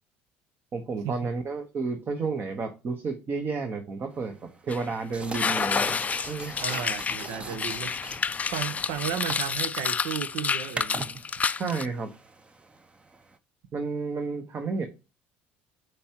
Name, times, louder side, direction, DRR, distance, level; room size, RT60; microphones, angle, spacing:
voice 1, 0.7-4.4 4.6-6.0 6.3-6.5 7.2-7.3 11.6-12.1 13.7-14.9, right 4 dB, 40° right, 1.2 m, -31 dB
sound 1, 4.1-13.4, right 3 dB, 20° right, 0.7 m, -42 dB
sound 2, 4.7-4.8 5.3-11.9, left 5 dB, 25° left, 0.4 m, -29 dB
voice 2, 6.6-8.2 8.5-11.1, right 9 dB, 70° right, 0.8 m, -34 dB
8.3 x 4.7 x 2.9 m
hypercardioid pair, 75°, 6 cm